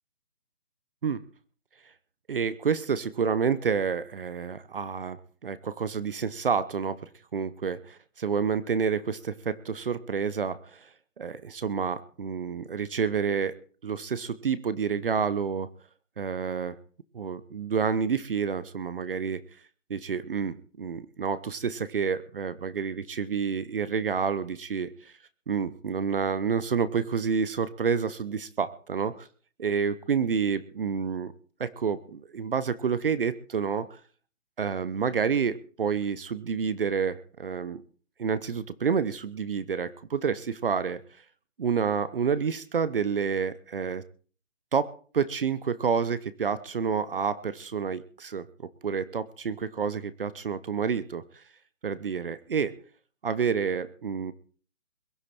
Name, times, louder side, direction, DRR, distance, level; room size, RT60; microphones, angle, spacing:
voice 1, 2.3-10.9 11.2-13.6 13.8-15.7 16.2-16.8 17.1-19.4 19.9-25.1 25.5-29.3 29.6-31.3 31.6-34.0 34.6-37.8 38.2-41.0 41.6-44.0 44.7-44.9 45.1-48.5 48.8-51.4 51.8-52.7 53.2-54.3, right 6 dB, 45° right, 15 dB, 0.9 m, -29 dB
22.0 x 11.5 x 4.4 m, 0.42 s
hypercardioid pair, 165°, 38 cm